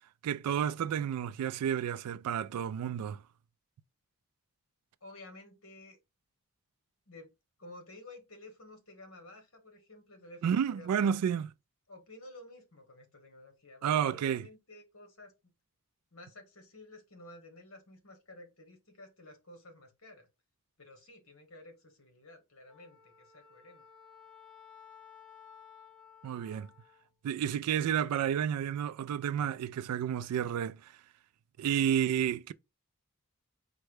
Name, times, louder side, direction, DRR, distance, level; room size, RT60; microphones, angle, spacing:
voice 1, 0.2-3.2 10.4-11.5 13.8-14.5 26.2-26.7 27.2-30.9 31.6-32.5, right 8 dB, 90° right, 0.3 m, -31 dB
voice 2, 5.0-6.0 7.1-7.3 7.6-11.4 11.9-15.5 16.1-20.3 20.8-23.8, left 2 dB, 65° left, 1.5 m, -52 dB
Wind instrument woodwind instrument, 22.7-27.1, left 7 dB, 5° left, 1.0 m, -56 dB
4.4 x 2.2 x 4.7 m
head